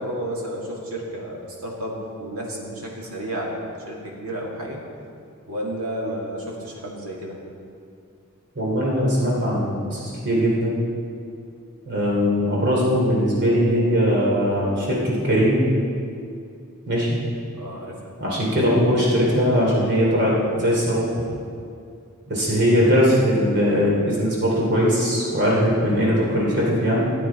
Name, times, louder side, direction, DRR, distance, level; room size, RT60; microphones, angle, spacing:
voice 1, 0.0-4.8 5.5-7.4 17.5-18.0 18.4-18.5, right 1 dB, 85° right, -3 dB, 2.5 m, -31 dB
voice 2, 8.5-10.7 11.9-15.6 16.9-17.2 18.2-21.1 22.3-27.1, equal, 50° right, -4 dB, 3.0 m, -20 dB
16.0 x 8.7 x 4.5 m, 2.4 s
head